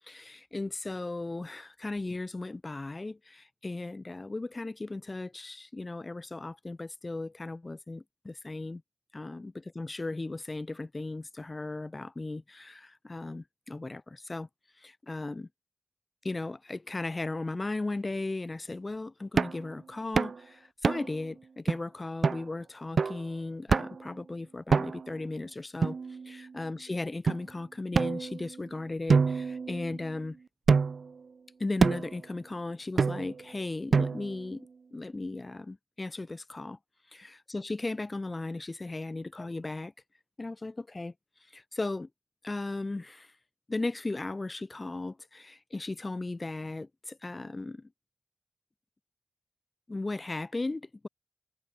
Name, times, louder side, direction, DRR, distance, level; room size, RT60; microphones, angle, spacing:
voice 1, 0.1-8.8 9.1-14.5 14.8-15.5 16.2-26.0 26.3-30.4 31.6-36.8 37.1-39.9 40.4-41.1 41.5-42.1 42.4-43.3 43.7-47.9 49.9-51.1, left 2 dB, 30° left, 0.4 m, -36 dB
sound 1, 19.4-19.6 20.2-20.4 20.8-21.2 21.7-21.8 22.2-22.4 23.0-23.2 23.7-24.1 24.7-25.2 25.8-26.5 27.3-27.4 27.9-28.6 29.1-30.1 30.7-31.1 31.8-32.2 33.0-33.4 33.9-34.4, right 5 dB, 75° right, 0.5 m, -27 dB
wide cardioid pair, 115°, 0 cm